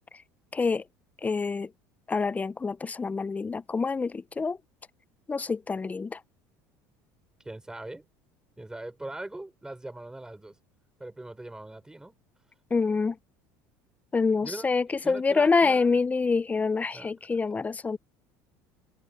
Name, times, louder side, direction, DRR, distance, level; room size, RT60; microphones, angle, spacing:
voice 1, 0.5-0.8 1.2-1.7 2.1-4.6 5.3-6.2 12.7-13.2 14.1-18.0, left 4 dB, 20° left, 0.7 m, -26 dB
voice 2, 7.4-8.1 8.6-10.6 11.0-12.1 14.3-16.0 16.9-17.1, right 2 dB, 10° right, 6.1 m, -41 dB
open air
supercardioid pair, 100°, 8 cm